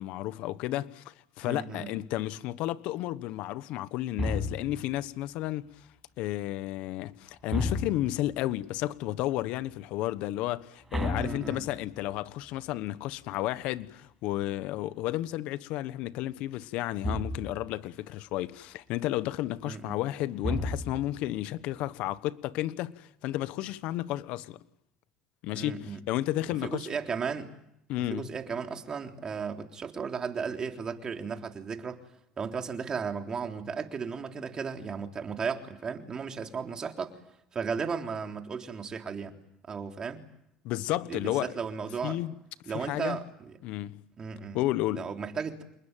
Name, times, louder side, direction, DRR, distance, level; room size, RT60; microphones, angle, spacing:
voice 1, 0.0-5.9 6.2-24.6 25.4-26.9 27.9-28.3 40.6-41.5 42.0-42.3 42.7-43.2 43.6-43.9 44.5-45.1, left 15 dB, 70° left, 1.2 m, -32 dB
voice 2, 1.4-1.9 11.2-11.6 19.6-20.0 25.5-26.0 26.5-27.5 28.0-32.0 32.4-37.2 37.5-39.3 39.7-40.2 41.1-42.2 42.7-43.6 44.2-44.6 44.9-45.6, right 6 dB, 35° right, 3.6 m, -35 dB
sound 1, 4.2-4.9 7.5-8.3 10.9-12.1 17.0-17.7 20.4-21.2, left 1 dB, 10° right, 7.4 m, -33 dB
28.0 x 20.5 x 9.2 m
supercardioid pair, 90°, 2 cm